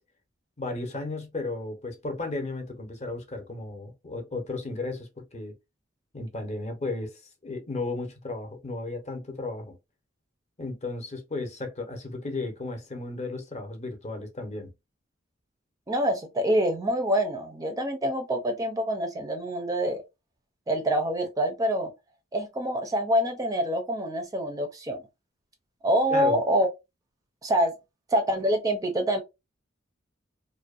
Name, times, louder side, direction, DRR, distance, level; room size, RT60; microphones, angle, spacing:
voice 1, 0.6-5.6 6.1-7.1 7.4-9.7 10.6-14.7 26.1-26.4, left 2 dB, 35° left, 0.6 m, -34 dB
voice 2, 15.9-20.0 20.7-21.9 22.3-25.0 25.8-26.7 27.4-27.7 28.1-29.2, equal, 20° right, 0.4 m, -26 dB
2.6 x 2.1 x 2.3 m
head